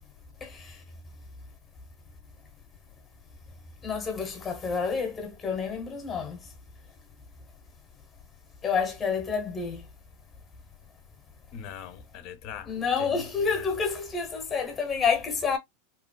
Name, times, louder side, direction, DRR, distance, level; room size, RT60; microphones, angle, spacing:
voice 1, 0.4-0.8 3.8-6.4 8.6-9.9 12.7-15.6, left 5 dB, 25° left, 1.0 m, -29 dB
voice 2, 11.5-13.8, left 8 dB, 50° left, 0.6 m, -42 dB
2.9 x 2.2 x 2.3 m
hypercardioid pair, 100°, 0 cm